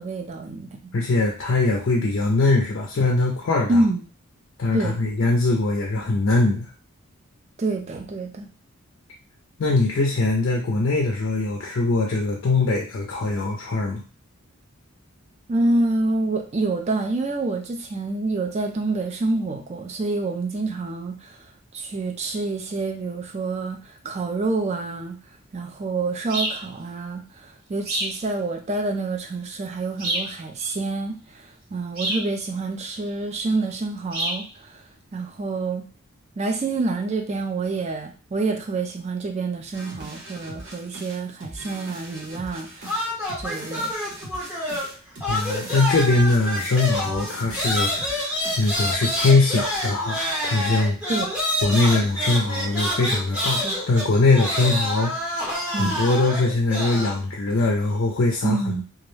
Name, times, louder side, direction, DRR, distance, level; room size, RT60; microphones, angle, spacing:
voice 1, 0.0-0.8 3.7-4.0 4.7-5.0 7.6-8.5 15.5-21.5 21.7-25.2 25.5-34.8 35.1-35.8 36.4-43.1 43.4-43.9 51.1-51.3 53.6-53.8 55.7-56.0 58.4-58.8, right 3 dB, 30° right, 4 dB, 0.3 m, -27 dB
voice 2, 0.9-3.8 4.6-6.7 9.6-14.0 45.3-51.0 51.6-55.4 55.7-58.8, left 3 dB, 55° left, 0 dB, 0.4 m, -22 dB
sound 1, 26.3-26.6 27.8-28.2 30.0-30.3 32.0-32.3 34.1-34.4, right 1 dB, 70° right, 1.3 m, -27 dB
sound 2, 39.7-48.7, right 1 dB, 55° right, 0.8 m, -40 dB
sound 3, 42.8-45.0 45.2-57.2, left 1 dB, 5° right, 0.7 m, -27 dB
2.3 x 2.1 x 3.1 m, 0.37 s
head